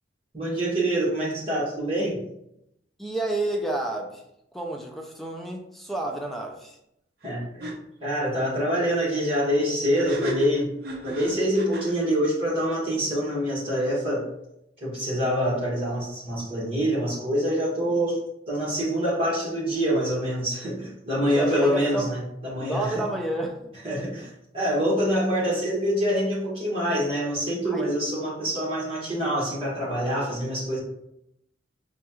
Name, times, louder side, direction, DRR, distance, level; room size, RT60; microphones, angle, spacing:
voice 1, 0.3-2.2 7.2-7.7 8.0-10.7 11.0-14.2 14.8-18.2 18.5-23.0 23.8-30.8, equal, 30° right, -6 dB, 1.4 m, -25 dB
voice 2, 3.0-4.2 4.5-6.8 21.3-22.1 22.6-23.8 27.6-27.9, right 2 dB, ahead, 1 dB, 0.3 m, -30 dB
sound 1, 7.2-7.3 7.6-7.7 9.9-12.0, right 2 dB, 55° right, 0.6 m, -34 dB
4.1 x 2.3 x 3.0 m, 0.79 s
head